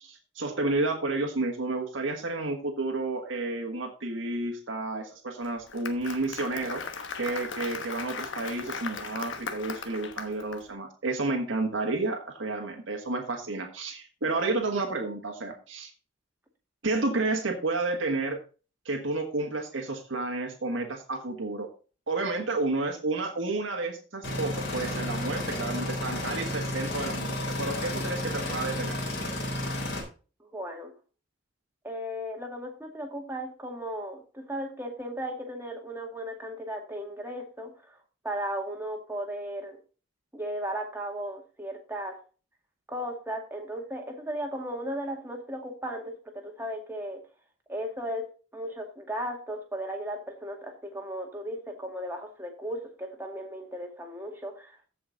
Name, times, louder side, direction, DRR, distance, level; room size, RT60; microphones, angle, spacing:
voice 1, 0.0-6.8 7.2-15.9 16.8-18.4 18.8-21.7 22.1-29.0, right 2 dB, 80° right, 2 dB, 1.6 m, -31 dB
Applause, 5.4-10.6, left 5 dB, 70° left, 1.2 m, -38 dB
sound 1, 24.2-30.0, left 1 dB, 55° left, 3.5 m, -32 dB
voice 2, 30.4-30.9 31.8-38.0 38.2-39.8 40.3-42.2 42.9-47.2 47.7-48.2 48.5-54.9, equal, 10° right, 1 dB, 1.9 m, -36 dB
15.0 x 5.2 x 4.0 m, 0.35 s
head